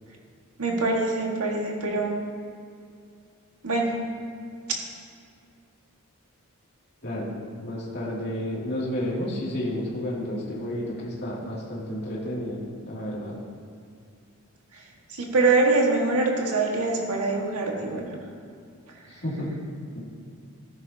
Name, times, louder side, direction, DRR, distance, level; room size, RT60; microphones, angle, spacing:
voice 1, 0.6-2.2 3.6-4.0 15.1-18.2, right 3 dB, 90° right, -1 dB, 1.7 m, -24 dB
voice 2, 7.0-7.4 7.6-13.4 19.1-19.5 19.9-20.0, left 1 dB, 50° left, -6 dB, 2.5 m, -31 dB
14.0 x 10.5 x 2.8 m, 2.3 s
head